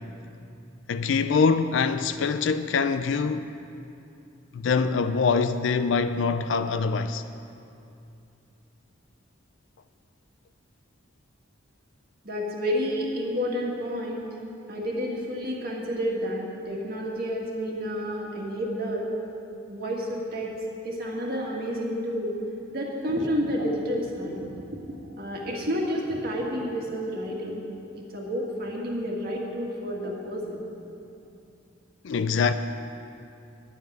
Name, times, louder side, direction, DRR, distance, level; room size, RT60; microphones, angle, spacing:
voice 1, 0.9-3.5 4.5-7.2 32.0-32.5, left 5 dB, 60° left, 0.4 m, -24 dB
voice 2, 12.2-14.3 14.7-19.1 19.7-20.5 20.8-22.3 22.7-27.6 27.9-30.6, equal, 45° right, 1.9 m, -30 dB
10.0 x 7.1 x 9.3 m
head